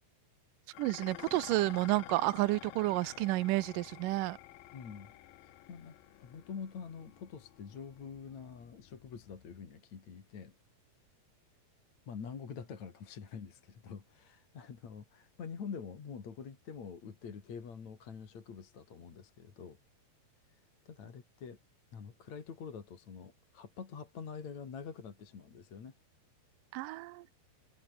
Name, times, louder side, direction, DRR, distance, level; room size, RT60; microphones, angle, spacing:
Dishes pots and pans, 0.7-9.5, left 15 dB, 70° left, 2.5 m, -51 dB
voice 1, 0.8-4.4 26.7-27.3, right 19 dB, 80° right, 1.9 m, -31 dB
voice 2, 4.7-5.1 5.4-5.9 6.2-10.5 12.1-19.8 20.9-21.6 21.9-25.9, left 6 dB, 45° left, 4.0 m, -46 dB
omnidirectional pair, 4.7 m